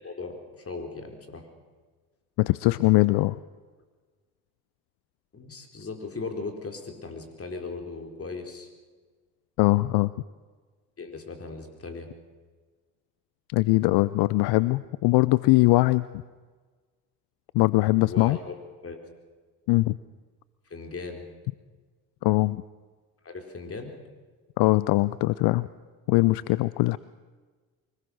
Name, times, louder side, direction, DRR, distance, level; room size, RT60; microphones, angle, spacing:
voice 1, 0.0-1.5 5.3-8.7 11.0-12.1 18.1-18.6 18.8-19.0 20.7-21.2 23.2-23.9, left 3 dB, 35° left, 5 dB, 4.3 m, -38 dB
voice 2, 2.4-3.4 9.6-10.1 13.5-16.1 17.5-18.4 19.7-20.0 22.2-22.6 24.6-25.7 26.1-27.0, left 20 dB, 70° left, 18 dB, 0.6 m, -21 dB
24.0 x 19.5 x 6.4 m, 1.4 s
hypercardioid pair, 65°, 41 cm